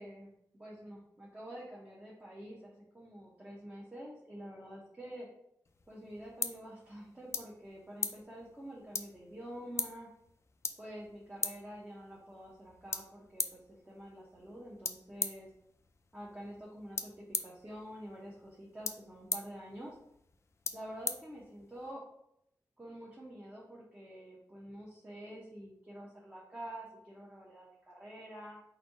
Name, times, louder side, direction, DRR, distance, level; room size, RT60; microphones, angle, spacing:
voice 1, 0.0-5.3 5.9-10.1 10.8-15.5 16.1-20.0 20.7-22.1 22.8-28.6, right 1 dB, 15° right, -5 dB, 0.9 m, -48 dB
sound 1, 5.7-21.9, left 4 dB, 40° left, 0.4 m, -42 dB
4.2 x 2.7 x 4.1 m, 0.74 s
wide cardioid pair, 110°, 7 cm